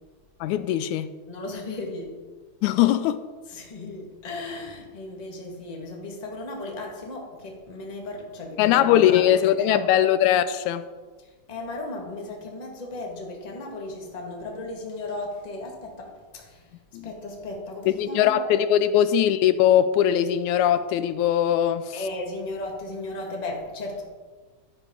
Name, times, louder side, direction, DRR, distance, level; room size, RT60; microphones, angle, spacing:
voice 1, 0.4-1.1 2.6-3.2 8.6-10.8 16.9-17.1 17.9-21.9, left 10 dB, 85° left, 12 dB, 2.0 m, -20 dB
voice 2, 1.3-2.2 3.5-9.4 9.7-9.9 11.2-16.7 17.0-18.4 21.9-24.0, left 2 dB, 20° left, 0 dB, 1.3 m, -35 dB
12.0 x 9.5 x 3.8 m, 1.4 s
omnidirectional pair, 3.4 m